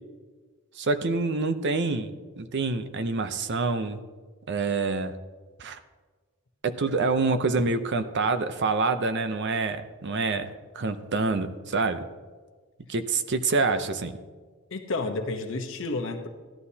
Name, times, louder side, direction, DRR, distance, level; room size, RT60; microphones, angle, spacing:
voice 1, 0.8-4.0 4.5-5.1 5.6-5.8 6.6-12.1 12.9-14.2, right 3 dB, 50° right, 10 dB, 0.6 m, -27 dB
voice 2, 14.7-16.3, left 3 dB, 60° left, 3 dB, 0.9 m, -31 dB
15.0 x 11.5 x 2.8 m, 1.4 s
head